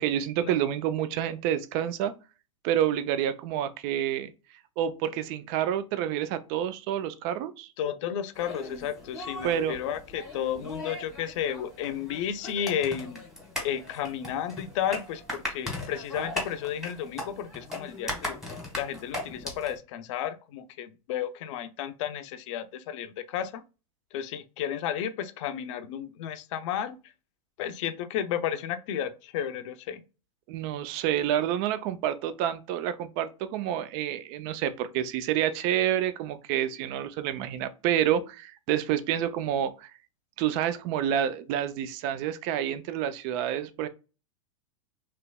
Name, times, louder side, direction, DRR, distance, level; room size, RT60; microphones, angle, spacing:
voice 1, 0.0-2.1 2.6-4.3 4.8-7.7 9.4-9.8 30.5-39.9 40.4-43.9, right 10 dB, 45° right, 0.4 m, -28 dB
voice 2, 7.8-13.2 13.6-18.4 18.8-23.6 24.1-27.0 27.6-30.0, left 9 dB, 60° left, 0.5 m, -32 dB
sound 1, 8.4-19.8, left 2 dB, ahead, 1.3 m, -38 dB
3.2 x 3.0 x 2.2 m
hypercardioid pair, 110°, 18 cm